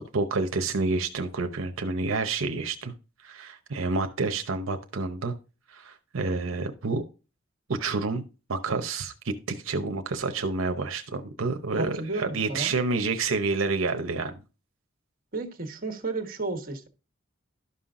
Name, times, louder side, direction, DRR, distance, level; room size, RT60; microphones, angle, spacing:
voice 1, 0.1-2.9 3.2-5.3 5.7-7.0 7.7-8.2 8.5-14.4, right 3 dB, 85° right, 0.8 m, -29 dB
voice 2, 11.8-12.7 15.3-16.9, right 3 dB, 45° right, 1.2 m, -32 dB
12.0 x 5.6 x 2.5 m
head